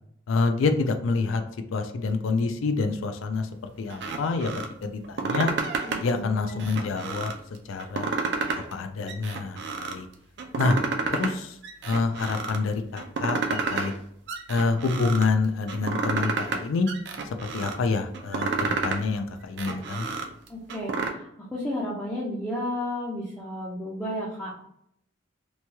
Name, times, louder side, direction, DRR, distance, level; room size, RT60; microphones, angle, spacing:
voice 1, 0.3-1.4 1.7-3.5 3.8-4.5 4.8-5.5 6.0-7.3 7.7-8.1 8.7-10.1 10.6-10.8 11.1-11.6 11.8-13.9 14.5-16.9 17.5-20.1, left 4 dB, 75° left, 8 dB, 0.4 m, -27 dB
sound 1, 3.9-4.7 5.0-6.1 6.5-7.4 7.8-8.8 9.1-10.0 10.4-11.3 11.6-12.6 13.0-14.0 14.3-15.3 15.7-16.6 16.9-17.8 18.1-19.0 19.4-21.1, right 4 dB, 55° right, 0.4 m, -30 dB
voice 2, 5.9-6.7 20.5-24.6, left 1 dB, 5° left, -7 dB, 0.4 m, -33 dB
3.0 x 2.2 x 2.8 m, 0.72 s
head